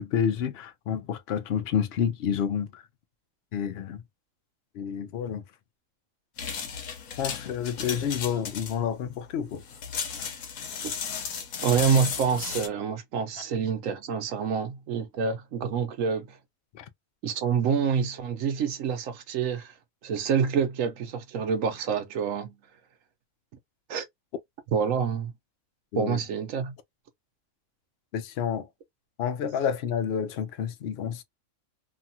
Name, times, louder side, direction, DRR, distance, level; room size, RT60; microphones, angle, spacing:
voice 1, 0.0-2.8 3.5-4.0 4.7-5.4 7.2-9.6 16.7-16.9 25.9-26.2 28.1-28.7 29.2-31.2, left 8 dB, 60° left, 0.7 m, -29 dB
sound 1, 6.4-12.7, left 6 dB, 90° left, 1.2 m, -35 dB
voice 2, 11.6-16.4 17.2-19.7 20.0-22.6 23.9-24.0 24.7-25.3 25.9-26.7, right 6 dB, 70° right, 1.0 m, -27 dB
2.9 x 2.3 x 2.7 m
omnidirectional pair, 1.4 m